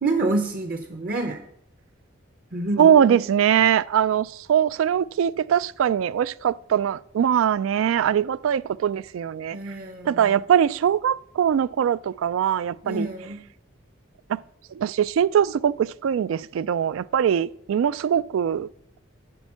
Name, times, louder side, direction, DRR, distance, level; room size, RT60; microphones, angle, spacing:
voice 1, 0.0-1.4 2.5-3.2 9.5-10.3 12.8-13.4, right 2 dB, 45° right, 0.7 m, -28 dB
voice 2, 2.8-9.6 10.1-13.1 14.3-14.4 14.7-18.7, right 9 dB, 85° right, 0.3 m, -22 dB
10.5 x 4.5 x 7.2 m
head